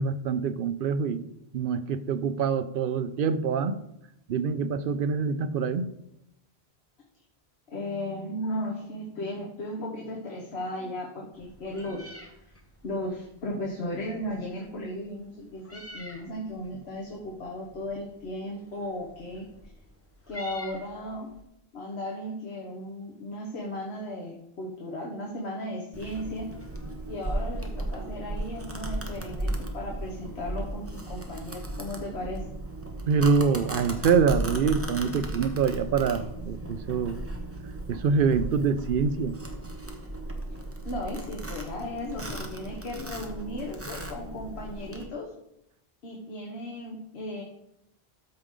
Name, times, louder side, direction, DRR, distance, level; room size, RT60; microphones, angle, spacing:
voice 1, 0.0-3.8 4.3-5.9 33.1-37.2 37.9-39.4, right 5 dB, 60° right, 11 dB, 0.7 m, -25 dB
voice 2, 7.7-12.1 12.8-19.4 20.3-21.3 21.7-26.4 27.1-32.4 40.5-40.6 40.8-45.3 46.0-47.4, left 1 dB, 85° left, -1 dB, 1.5 m, -36 dB
Meow, 11.3-21.4, left 1 dB, 15° left, 1.0 m, -49 dB
Domestic sounds home sounds, 25.9-45.0, right 1 dB, 15° right, 0.9 m, -36 dB
13.0 x 4.9 x 3.7 m, 0.81 s
omnidirectional pair, 1.1 m